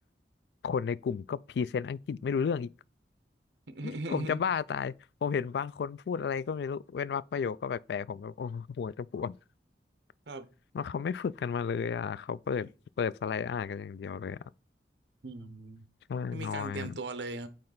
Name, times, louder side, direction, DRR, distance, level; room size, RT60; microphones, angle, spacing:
voice 1, 0.6-2.7 3.8-9.4 10.7-12.7 13.0-14.4 16.1-17.0, left 6 dB, 70° left, 0.3 m, -33 dB
voice 2, 3.7-4.4 10.3-10.4 15.2-15.8 16.3-17.5, right 2 dB, 85° right, 0.9 m, -38 dB
8.7 x 3.2 x 3.9 m
head